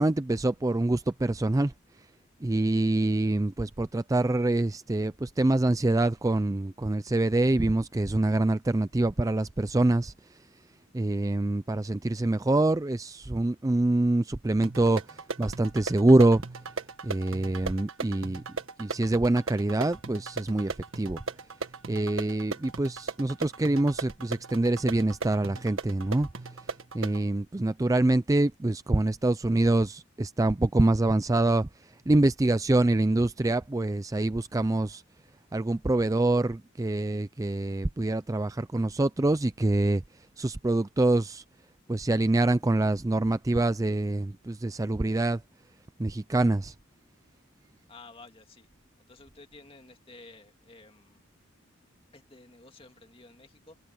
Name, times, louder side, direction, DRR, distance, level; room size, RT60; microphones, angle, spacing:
voice 1, 0.0-1.7 2.4-10.5 10.9-16.4 17.0-18.4 18.8-21.2 21.9-35.0 35.5-41.4 41.9-45.4 46.0-46.7, right 2 dB, 15° right, 0.4 m, -25 dB
sound 1, 14.6-27.2, right 4 dB, 70° right, 1.6 m, -38 dB
voice 2, 47.9-48.7 49.1-51.3 52.1-53.8, left 3 dB, 25° left, 2.3 m, -52 dB
open air
head